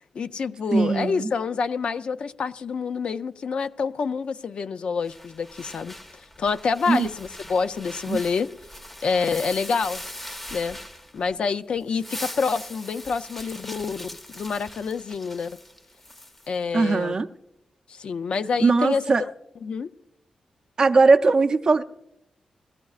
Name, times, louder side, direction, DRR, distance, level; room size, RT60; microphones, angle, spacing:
voice 1, 0.1-8.5 9.0-10.0 10.5-10.8 11.1-15.6 16.5-17.1 17.9-19.3 19.6-19.9, left 5 dB, 60° left, 0.4 m, -27 dB
voice 2, 0.7-1.3 6.9-7.1 8.1-8.2 16.7-17.3 18.6-19.2 20.8-21.8, right 3 dB, 40° right, 0.5 m, -19 dB
sound 1, 5.1-11.4 11.8-16.5, left 1 dB, 10° left, 0.6 m, -41 dB
21.0 x 15.5 x 2.4 m
wide cardioid pair, 160°, 2 cm